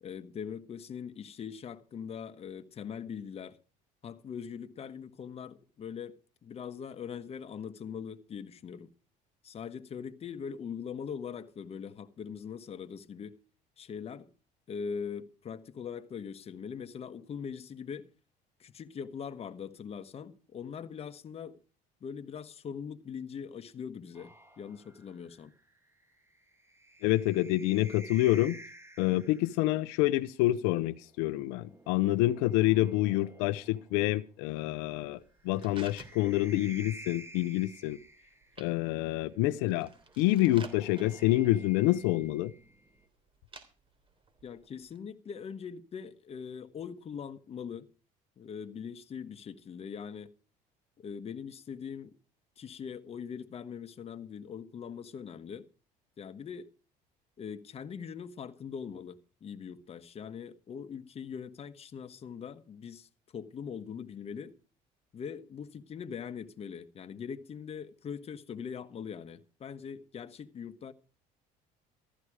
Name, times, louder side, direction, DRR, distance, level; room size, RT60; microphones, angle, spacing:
voice 1, 0.0-3.6 4.0-8.9 9.4-13.4 13.8-14.3 14.7-18.1 18.6-21.6 22.0-25.5 44.4-47.9 48.4-50.3 51.0-52.1 52.6-55.7 56.2-56.7 57.4-64.5 65.1-70.9, left 7 dB, 35° left, 1.4 m, -42 dB
sound 1, 24.1-29.7 31.1-34.0 35.4-38.9 40.1-43.1, right 1 dB, 15° right, 2.5 m, -52 dB
voice 2, 27.0-28.6 29.0-35.2 35.4-38.0 38.6-39.9 40.2-42.5, left 16 dB, 85° left, 0.8 m, -27 dB
sound 2, 34.9-45.0, right 3 dB, 30° right, 3.4 m, -55 dB
15.0 x 12.5 x 4.9 m
supercardioid pair, 105°, 17 cm